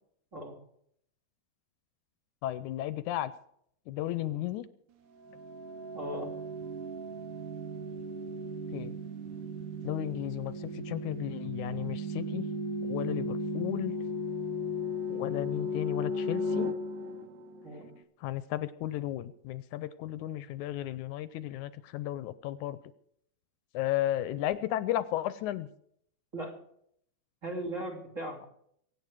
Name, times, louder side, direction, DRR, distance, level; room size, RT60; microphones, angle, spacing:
voice 1, 2.4-3.3 3.9-4.7 8.7-8.9 9.8-12.5 12.8-13.9 15.1-16.7 18.2-22.8 23.7-25.7, left 13 dB, 80° left, 14 dB, 2.0 m, -34 dB
sound 1, 5.2-17.9, left 1 dB, 80° right, 2.8 m, -36 dB
voice 2, 5.9-6.3 17.6-17.9 26.3-26.6 27.4-28.4, right 1 dB, 25° right, 1 dB, 3.0 m, -38 dB
23.5 x 9.4 x 4.8 m, 0.69 s
omnidirectional pair, 3.5 m